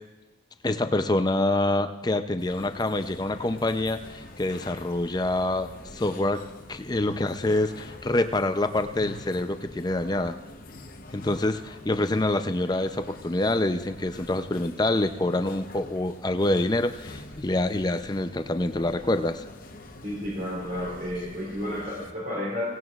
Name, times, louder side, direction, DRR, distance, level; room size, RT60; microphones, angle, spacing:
voice 1, 0.6-6.4 6.7-10.4 11.1-19.4, left 2 dB, 20° left, 9 dB, 0.5 m, -26 dB
sound 1, 2.4-22.1, left 2 dB, 50° left, 0.9 m, -45 dB
voice 2, 20.0-22.6, left 1 dB, 50° right, -6 dB, 3.6 m, -31 dB
17.5 x 17.0 x 2.4 m, 1.1 s
head